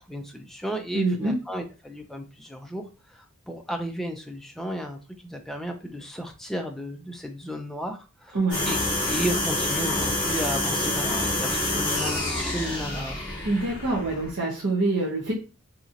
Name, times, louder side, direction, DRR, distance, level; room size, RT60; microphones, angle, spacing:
voice 1, 0.1-2.8 3.1-5.0 5.2-8.4 8.6-8.8 9.1-13.2, equal, ahead, 3 dB, 0.3 m, -33 dB
voice 2, 0.9-1.4 8.3-8.7 13.4-15.3, right 2 dB, 60° right, -7 dB, 0.8 m, -25 dB
sound 1, 8.5-14.3, left 1 dB, 20° left, 1.1 m, -27 dB
2.8 x 2.7 x 2.5 m, 0.33 s
head